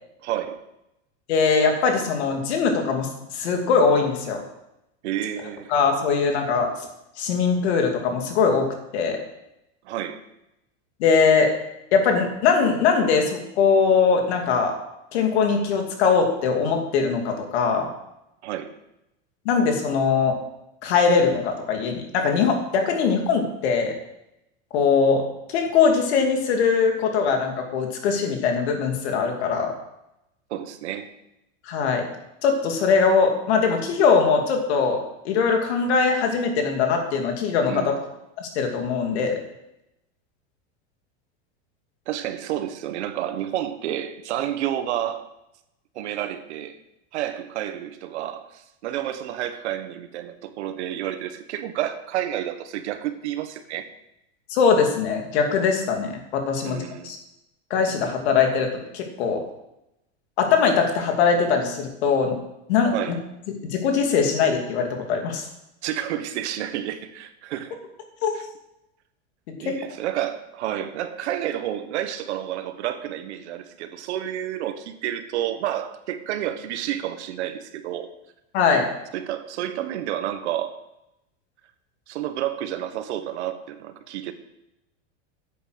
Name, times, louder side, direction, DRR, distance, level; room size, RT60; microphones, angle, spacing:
voice 1, 0.2-0.6 5.0-5.7 9.8-10.2 18.4-18.8 30.5-31.1 37.7-38.0 42.1-45.3 45.9-46.8 47.1-53.8 56.6-57.2 62.9-63.2 65.8-67.8 68.3-68.4 69.6-78.1 79.1-80.7 82.1-84.3, right 11 dB, 80° right, 9 dB, 1.4 m, -30 dB
voice 2, 1.3-4.4 5.7-6.7 7.2-8.7 8.9-9.2 11.0-11.5 11.9-14.7 15.1-17.9 19.4-20.4 20.8-24.0 24.7-25.2 25.5-29.7 31.7-32.1 32.4-37.9 38.4-39.4 54.5-57.2 57.7-58.7 58.9-59.4 60.4-62.4 62.7-63.2 63.6-65.4 68.2-68.3 69.6-69.8 78.5-78.9, left 5 dB, 70° left, 3 dB, 2.7 m, -21 dB
10.0 x 8.3 x 6.4 m, 0.87 s
supercardioid pair, 165°, 34 cm